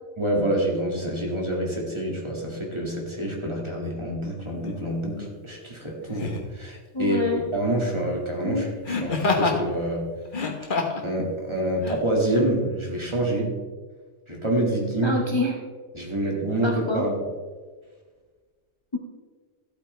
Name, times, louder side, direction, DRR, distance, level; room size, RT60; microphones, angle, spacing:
voice 1, 0.2-7.2 7.5-10.1 11.0-13.6 14.3-15.2 15.9-17.1, right 1 dB, 25° right, -2 dB, 2.1 m, -27 dB
Laughter, 4.6-4.8 6.1-6.5 8.9-9.6 10.3-11.1 11.8-12.0, left 3 dB, 45° left, 1.3 m, -26 dB
voice 2, 6.9-7.4 8.4-8.6 9.0-9.1 15.0-15.6 16.6-17.0 18.9-19.0, left 2 dB, 25° left, 0 dB, 0.9 m, -26 dB
14.0 x 8.2 x 3.3 m, 1.4 s
omnidirectional pair, 1.3 m